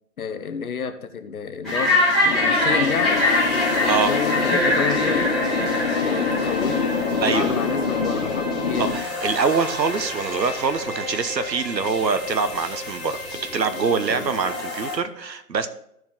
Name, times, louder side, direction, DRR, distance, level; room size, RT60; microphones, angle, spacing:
voice 1, 0.2-2.0 2.2-3.2 3.8-9.0 14.1-14.3, left 6 dB, 60° left, 9 dB, 1.1 m, -30 dB
sound 1, 1.6-15.0, left 1 dB, ahead, 1.2 m, -25 dB
sound 2, 2.3-8.9, left 5 dB, 35° left, 1.0 m, -26 dB
voice 2, 3.9-4.2 7.2-7.5 8.8-15.7, right 5 dB, 90° right, 11 dB, 1.1 m, -24 dB
13.0 x 4.7 x 3.7 m, 0.75 s
hypercardioid pair, 155°, 49 cm